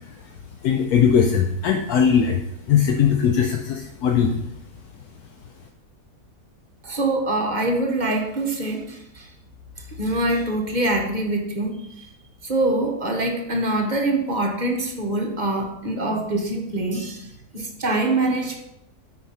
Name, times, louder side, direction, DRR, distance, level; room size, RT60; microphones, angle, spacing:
voice 1, 0.6-2.4 2.7-4.4, left 7 dB, 75° left, 3 dB, 1.1 m, -19 dB
voice 2, 6.8-9.3 9.8-12.1 12.4-17.3 17.5-18.6, right 2 dB, 35° right, 3 dB, 0.8 m, -24 dB
8.4 x 4.7 x 4.2 m, 0.81 s
omnidirectional pair, 1.7 m